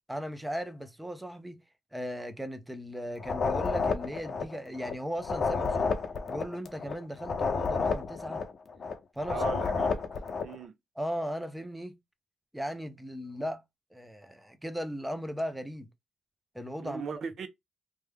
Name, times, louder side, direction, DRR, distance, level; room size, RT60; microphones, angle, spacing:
voice 1, 0.1-1.6 1.9-5.9 6.3-8.5 9.2-9.5 11.0-11.9 12.5-13.6 13.9-15.9 16.5-17.2, equal, 5° right, 0.6 m, -37 dB
sound 1, 3.2-4.9 5.2-8.9 9.2-10.6, left 4 dB, 40° left, 0.6 m, -31 dB
voice 2, 9.3-10.0 10.4-10.7 16.8-17.5, right 6 dB, 55° right, 0.6 m, -37 dB
3.4 x 2.2 x 3.3 m
cardioid pair, 120°, 0 cm